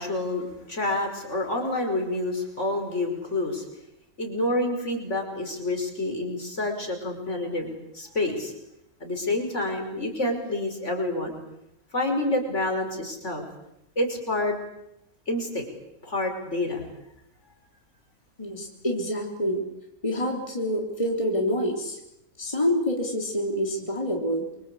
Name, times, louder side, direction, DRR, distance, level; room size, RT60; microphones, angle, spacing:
voice 1, 0.0-3.6 4.2-8.5 9.0-11.4 11.9-13.4 14.0-14.6 15.3-15.7 16.0-16.9, left 2 dB, 50° left, 4 dB, 5.6 m, -28 dB
voice 2, 18.4-19.6 20.0-22.0 22.4-24.5, equal, 20° left, 1 dB, 3.6 m, -27 dB
28.5 x 24.0 x 8.4 m, 0.85 s
omnidirectional pair, 1.6 m